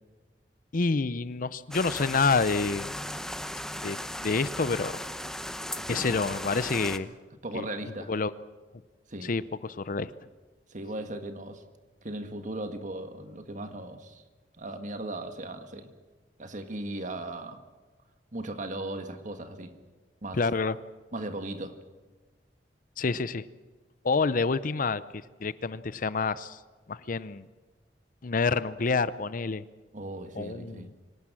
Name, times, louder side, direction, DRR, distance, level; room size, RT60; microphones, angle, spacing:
voice 1, 0.7-2.9 3.8-5.0 5.9-7.1 7.5-8.3 9.2-10.1 20.3-20.8 23.0-23.5 24.0-26.6 26.9-27.5 28.2-29.6 30.3-30.9, left 4 dB, 50° left, 16 dB, 0.6 m, -28 dB
sound 1, 1.7-7.0, left 1 dB, 5° left, 0.9 m, -37 dB
voice 2, 5.8-6.2 7.4-8.1 9.1-9.3 10.7-11.6 12.0-14.2 14.6-15.9 16.4-17.6 18.3-19.7 20.2-20.4 21.1-21.8 29.9-30.9, right 1 dB, 45° right, 7 dB, 1.7 m, -37 dB
25.0 x 18.0 x 7.6 m, 1.3 s
head